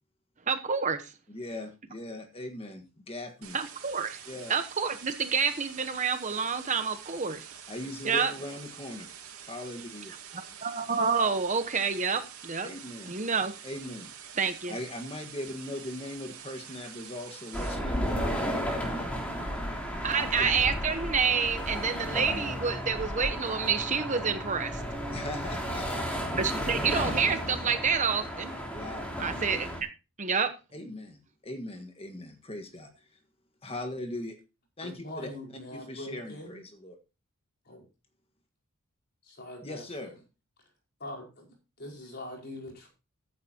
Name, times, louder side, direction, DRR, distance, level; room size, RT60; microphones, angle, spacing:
voice 1, 0.5-1.1 3.5-4.2 4.5-7.5 8.0-8.3 10.6-12.7 13.1-13.5 14.4-14.7 20.0-24.8 26.4-28.6 29.2-29.7 30.2-30.5, right 5 dB, 35° right, 8 dB, 1.0 m, -28 dB
voice 2, 1.3-3.6 4.3-4.5 7.7-9.1 9.4-10.1 12.6-13.2 13.6-14.1 14.7-19.3 19.7-20.0 20.4-20.5 25.1-26.1 28.7-29.1 30.7-32.9 33.6-34.4 34.8-35.3 35.7-37.0 39.6-40.1, left 1 dB, 25° left, 5 dB, 1.6 m, -40 dB
sound 1, 3.4-17.8, right 8 dB, 90° right, 2.9 m, -47 dB
sound 2, 17.5-29.8, equal, 5° left, 3.4 m, -33 dB
voice 3, 34.8-36.6 37.7-37.8 39.3-40.1 41.0-41.5 41.8-42.9, left 1 dB, 50° left, 0 dB, 5.3 m, -42 dB
15.0 x 10.0 x 2.9 m, 0.30 s
head